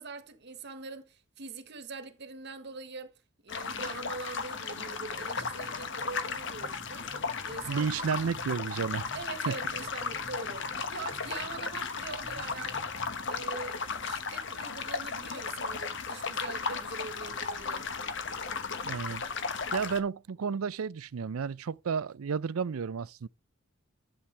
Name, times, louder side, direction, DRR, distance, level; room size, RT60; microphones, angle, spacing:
voice 1, 0.0-7.1 7.4-8.1 9.1-12.8 13.3-17.9, right 4 dB, 55° right, 1.3 m, -43 dB
sound 1, 3.5-20.0, left 5 dB, 60° left, 1.2 m, -35 dB
sound 2, 5.1-13.4, right 1 dB, 10° right, 2.3 m, -53 dB
voice 2, 7.7-9.1 9.5-9.6 18.8-19.2 19.7-23.3, right 6 dB, 85° right, 0.5 m, -32 dB
11.5 x 7.4 x 3.3 m
head